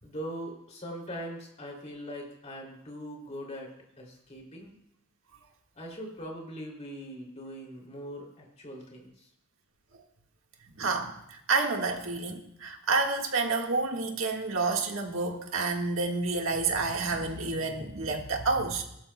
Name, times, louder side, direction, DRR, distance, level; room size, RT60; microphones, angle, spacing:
voice 1, 0.0-4.8 5.7-9.3, equal, 35° left, 0 dB, 2.7 m, -41 dB
voice 2, 10.8-18.8, right 3 dB, 75° right, 2 dB, 1.6 m, -29 dB
19.0 x 12.0 x 2.2 m, 0.78 s
head